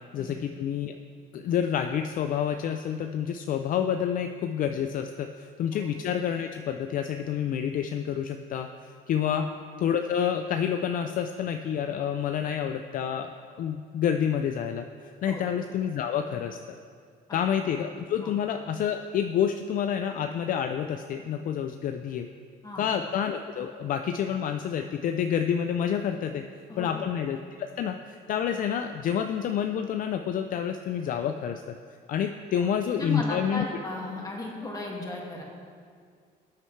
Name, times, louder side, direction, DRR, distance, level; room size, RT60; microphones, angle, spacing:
voice 1, 0.1-1.0 1.3-9.5 9.8-13.3 13.6-16.6 17.3-22.3 22.7-26.4 26.8-31.6 32.1-33.6, left 8 dB, 55° left, 7 dB, 0.4 m, -28 dB
voice 2, 26.7-27.0 32.5-35.4, left 2 dB, 20° left, -2 dB, 2.1 m, -36 dB
14.0 x 8.7 x 3.3 m, 2.1 s
cardioid pair, 110°, 17 cm